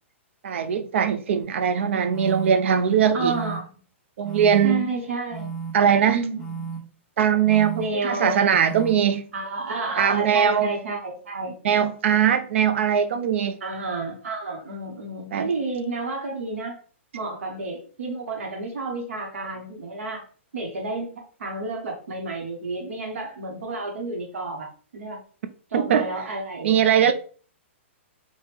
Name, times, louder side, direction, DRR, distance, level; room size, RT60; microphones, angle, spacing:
voice 1, 0.4-3.3 4.2-4.9 5.7-6.2 7.2-9.3 10.0-10.7 11.6-13.6 15.3-15.5 25.7-26.1 26.6-27.1, right 8 dB, 65° right, 0.4 m, -21 dB
sound 1, 1.4-1.5 2.1-2.5 3.2-3.6 4.2-4.6 5.3-5.7 6.4-6.8 7.4-7.8 8.5-8.9, right 5 dB, 5° left, 0.8 m, -33 dB
voice 2, 3.1-3.7 4.6-5.6 6.1-6.7 7.7-8.4 9.3-11.5 13.6-16.8 17.1-20.2 20.5-21.1 21.4-24.7 24.9-25.2 25.7-27.1, right 3 dB, 90° right, 0.8 m, -30 dB
3.3 x 2.1 x 3.2 m
hypercardioid pair, 155°, 7 cm